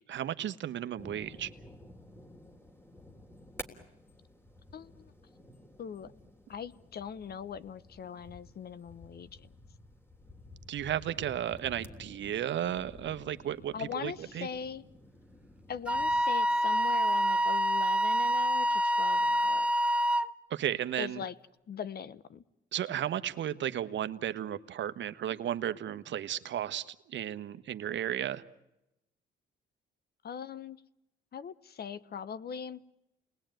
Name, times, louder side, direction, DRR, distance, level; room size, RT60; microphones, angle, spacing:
voice 1, 0.1-1.5 10.7-14.5 20.5-21.2 22.7-28.4, right 11 dB, 65° right, 11 dB, 1.3 m, -34 dB
sound 1, 1.0-16.2, left 1 dB, 10° left, 3.3 m, -52 dB
voice 2, 4.7-5.1 5.8-6.1 6.5-9.5 13.7-14.8 15.7-19.7 21.0-21.3 21.7-22.4 30.2-30.8 31.3-32.8, left 7 dB, 55° left, 16 dB, 1.2 m, -41 dB
Wind instrument woodwind instrument, 15.9-20.3, equal, 5° right, 0.9 m, -27 dB
29.5 x 20.5 x 9.2 m, 0.93 s
cardioid pair, 90°, 20 cm